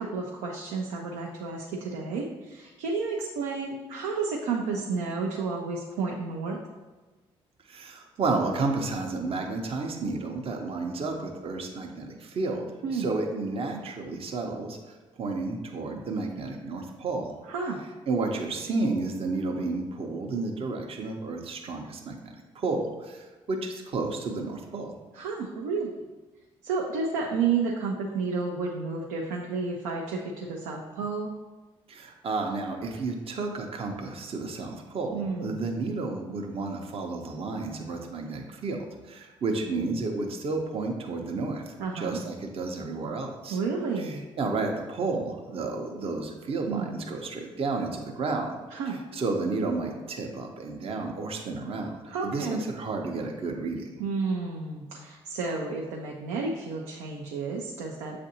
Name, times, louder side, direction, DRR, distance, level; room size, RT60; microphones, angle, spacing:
voice 1, 0.0-6.6 12.8-13.1 17.5-17.8 25.1-25.9 26.6-31.3 35.1-35.6 41.8-42.2 43.5-44.2 46.7-47.0 48.7-49.0 52.0-52.6 54.0-58.2, right 4 dB, 90° right, 0 dB, 0.5 m, -31 dB
voice 2, 7.7-12.7 12.9-14.8 15.2-17.4 18.1-24.9 31.9-38.8 39.0-43.6 44.0-48.6 49.1-51.9 52.2-54.0, right 3 dB, 50° right, 2 dB, 0.7 m, -31 dB
7.4 x 2.5 x 2.8 m, 1.2 s
supercardioid pair, 55°, 12 cm